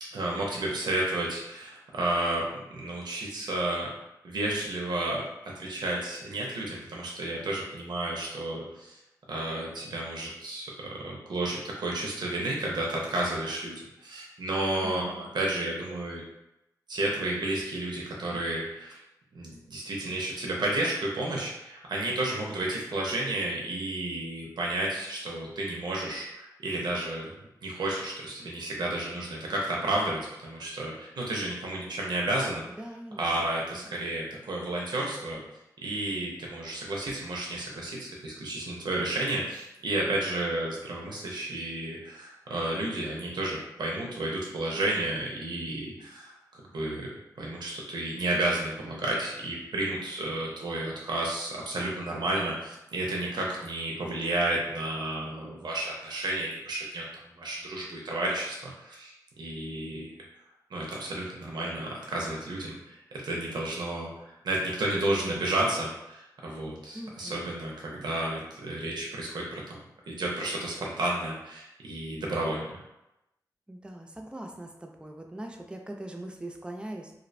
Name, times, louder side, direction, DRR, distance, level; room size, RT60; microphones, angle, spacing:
voice 1, 0.0-3.9 4.2-9.0 9.3-16.2 16.9-18.9 19.3-27.3 27.6-32.6 33.2-35.4 35.8-47.1 47.4-57.0 57.4-60.2 60.7-69.8 70.1-72.8, right 1 dB, 75° right, -3 dB, 0.5 m, -32 dB
voice 2, 14.8-15.4 32.7-33.5 33.8-34.0 66.9-67.5 73.7-77.1, right 1 dB, 15° right, 2 dB, 0.4 m, -42 dB
2.5 x 2.1 x 2.5 m, 0.90 s
cardioid pair, 65°, 7 cm